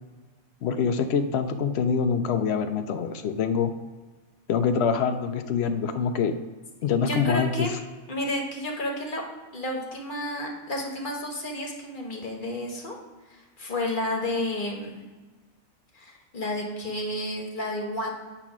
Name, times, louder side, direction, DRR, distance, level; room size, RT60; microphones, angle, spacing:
voice 1, 0.6-3.7 4.5-6.4 6.8-7.7, left 6 dB, 65° left, 8 dB, 0.7 m, -25 dB
voice 2, 7.0-7.7 8.1-9.2 9.5-13.0 13.3-15.1 15.9-18.1, left 1 dB, 40° left, 0 dB, 1.1 m, -31 dB
8.5 x 2.9 x 6.0 m, 1.3 s
omnidirectional pair, 1.4 m